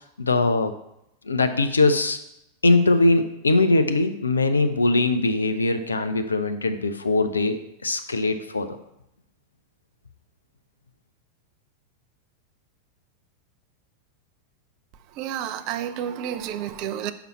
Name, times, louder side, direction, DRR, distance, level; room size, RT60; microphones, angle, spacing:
voice 1, 0.2-0.7 1.3-2.2 2.6-8.8, left 2 dB, 75° left, 9 dB, 0.5 m, -21 dB
voice 2, 15.2-17.1, right 10 dB, 40° right, 12 dB, 0.4 m, -30 dB
5.9 x 5.4 x 4.2 m, 0.81 s
figure-of-eight pair, 90°, 0 cm